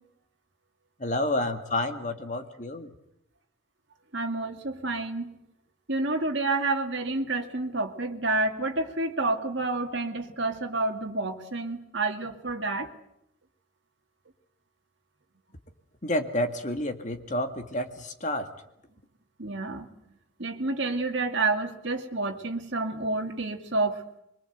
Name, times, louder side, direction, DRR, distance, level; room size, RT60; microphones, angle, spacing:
voice 1, 1.0-2.9 16.0-18.4, left 1 dB, 35° left, 6 dB, 2.0 m, -29 dB
voice 2, 4.1-5.3 5.9-12.9 19.4-19.9 20.4-24.0, right 2 dB, 60° right, 4 dB, 2.3 m, -29 dB
24.0 x 23.5 x 8.0 m, 0.79 s
head